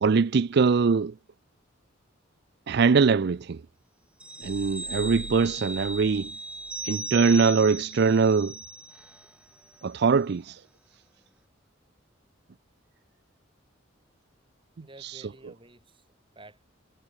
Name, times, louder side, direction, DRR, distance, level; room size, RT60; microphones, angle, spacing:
voice 1, 0.0-1.1 2.7-3.6 4.4-6.3 6.8-8.5 9.8-10.6 15.0-15.2, right 5 dB, 55° right, 0.4 m, -22 dB
sound 1, 4.2-9.3 9.6-9.8, right 2 dB, 5° right, 1.5 m, -38 dB
sound 2, 4.4-7.1, left 1 dB, 90° left, 3.5 m, -47 dB
voice 2, 14.8-16.7, right 2 dB, 25° right, 6.2 m, -52 dB
head